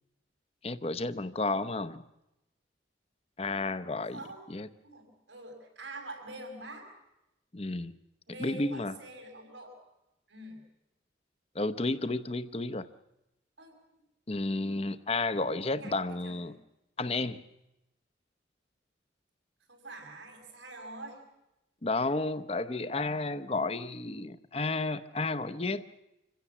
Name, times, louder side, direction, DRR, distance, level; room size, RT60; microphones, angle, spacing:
voice 1, 0.6-2.0 3.4-4.2 4.5-4.7 7.5-7.9 8.4-8.9 11.5-12.9 14.3-16.6 17.0-17.4 21.8-26.0, left 2 dB, 30° left, 13 dB, 0.8 m, -32 dB
voice 2, 4.8-6.9 8.3-9.8 10.3-10.6 13.6-13.8 15.8-16.6 19.7-21.2, right 2 dB, 90° right, 3 dB, 5.9 m, -45 dB
26.0 x 16.5 x 7.2 m, 0.91 s
head